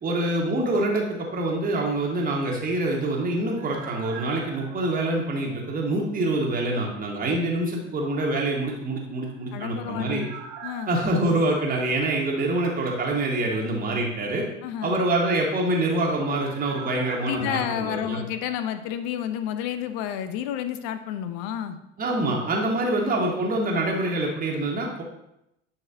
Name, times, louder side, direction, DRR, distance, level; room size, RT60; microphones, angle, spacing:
voice 1, 0.0-10.3 10.9-14.4 14.8-18.2 22.0-25.0, right 2 dB, 20° right, -1 dB, 1.6 m, -25 dB
sound 1, 2.7-6.4 6.6-6.7 9.1-12.9 13.1-13.2 15.5-19.3 19.6-19.7, right 6 dB, 45° right, 1.6 m, -45 dB
voice 2, 9.5-10.3 10.6-10.9 14.6-15.0 17.3-21.8, left 10 dB, 45° left, 10 dB, 0.7 m, -30 dB
10.5 x 4.6 x 2.9 m, 0.83 s
figure-of-eight pair, 75°, 38 cm